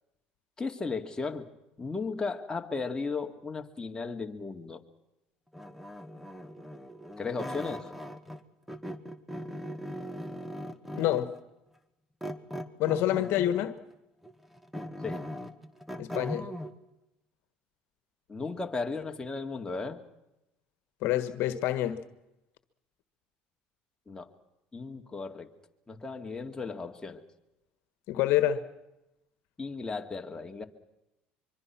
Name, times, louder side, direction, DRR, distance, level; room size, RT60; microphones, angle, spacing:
voice 1, 0.6-1.4 1.8-4.8 7.2-7.9 15.0-15.2 18.3-20.0 24.1-24.3 24.7-25.5 25.9-27.2 29.6-30.6, left 4 dB, 15° left, 3 dB, 2.5 m, -35 dB
sound 1, 5.5-8.4 8.7-11.4 12.2-13.8 14.2-16.7, equal, ahead, 2.0 m, -39 dB
voice 2, 11.0-11.3 12.8-13.7 16.0-16.5 21.0-22.0 28.1-28.6, left 13 dB, 70° left, 11 dB, 1.5 m, -27 dB
24.5 x 24.0 x 6.1 m, 0.91 s
supercardioid pair, 85°, 4 cm